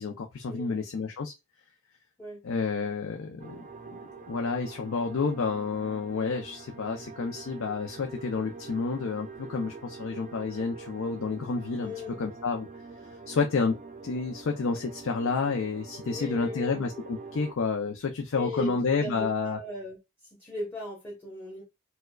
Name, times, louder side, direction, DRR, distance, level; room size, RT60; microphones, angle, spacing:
voice 1, 0.0-1.3 2.4-3.6 3.9-4.0 4.3-11.9 12.2-12.7 13.3-13.8 14.0-19.6, left 4 dB, 75° left, 0.5 m, -30 dB
sound 1, 3.4-17.5, right 4 dB, 35° right, 0.4 m, -45 dB
voice 2, 11.8-12.2 16.1-16.8 18.3-20.0 20.4-21.6, left 1 dB, 10° left, 0.9 m, -38 dB
4.4 x 2.2 x 2.3 m
head